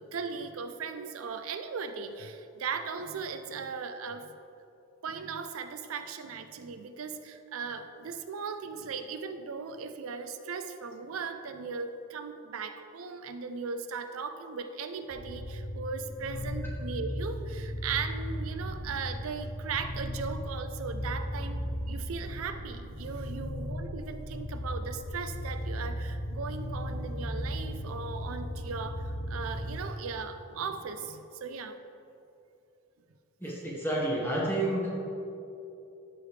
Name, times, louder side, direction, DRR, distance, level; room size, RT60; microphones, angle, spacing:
voice 1, 0.0-4.3 5.0-31.8, right 5 dB, 85° right, 9 dB, 0.4 m, -38 dB
sound 1, 15.1-29.8, equal, 85° left, 1.4 m, -36 dB
voice 2, 33.4-34.9, right 1 dB, 10° left, -5 dB, 1.5 m, -30 dB
12.5 x 5.0 x 3.3 m, 2.8 s
head